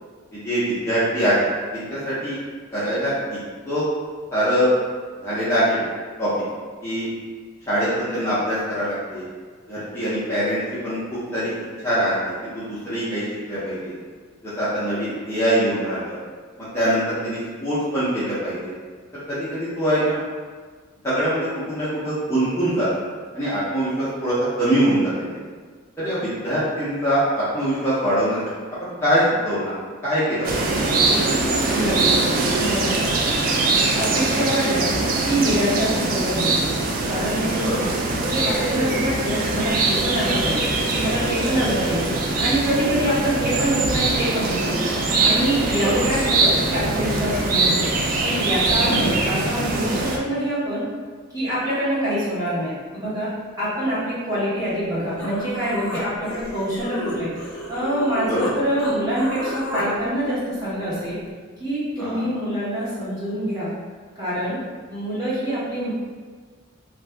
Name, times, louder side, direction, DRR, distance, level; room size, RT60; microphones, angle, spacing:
voice 1, 0.3-1.5 1.7-2.4 2.7-3.1 3.6-3.8 4.3-4.7 5.2-5.8 6.2-6.5 6.8-7.1 7.7-9.2 9.7-11.5 11.8-14.0 14.4-16.2 16.7-18.7 19.3-20.2 21.0-22.9 23.3-25.4 26.0-28.4 28.8-29.8 30.0-31.0 37.6-37.8 45.8-46.2 48.8-49.2 58.2-58.5 62.0-62.2, equal, 10° left, -12 dB, 0.6 m, -23 dB
sound 1, 30.4-50.2, right 3 dB, 40° right, 0.3 m, -22 dB
voice 2, 31.7-32.3 32.6-33.0 33.9-34.9 35.2-36.7 37.1-37.9 38.3-40.7 41.0-42.1 42.4-44.8 45.2-47.9 48.2-50.9 51.3-53.3 53.6-57.3 57.7-61.2 61.6-63.7 64.2-64.6 64.9-65.9, equal, 15° right, -11 dB, 0.9 m, -25 dB
Human voice, 54.8-54.9 55.2-58.5 58.8-59.9, left 1 dB, 80° left, 0.6 m, -32 dB
2.6 x 2.3 x 3.3 m, 1.5 s
head